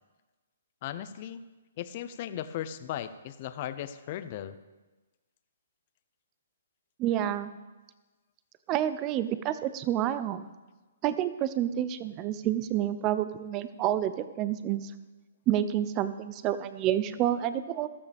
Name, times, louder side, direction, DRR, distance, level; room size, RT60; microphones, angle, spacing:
voice 1, 0.8-1.4 1.8-4.6, left 11 dB, 40° left, 12 dB, 0.8 m, -37 dB
voice 2, 7.0-7.5 8.7-10.5 11.0-14.9 15.5-17.9, right 11 dB, 25° right, 13 dB, 0.7 m, -29 dB
14.0 x 12.5 x 3.5 m, 1.2 s
hypercardioid pair, 150°, 0 cm